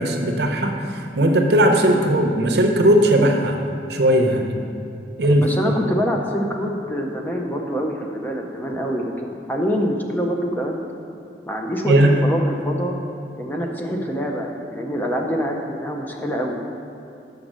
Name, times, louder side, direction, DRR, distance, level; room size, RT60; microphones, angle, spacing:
voice 1, 0.0-3.6 3.9-4.6 5.2-5.5 11.9-12.1, right 1 dB, 65° right, 3 dB, 0.7 m, -18 dB
voice 2, 5.3-10.8 11.5-13.0 13.4-16.6, equal, 10° left, 0 dB, 0.6 m, -25 dB
6.5 x 5.3 x 6.1 m, 2.8 s
head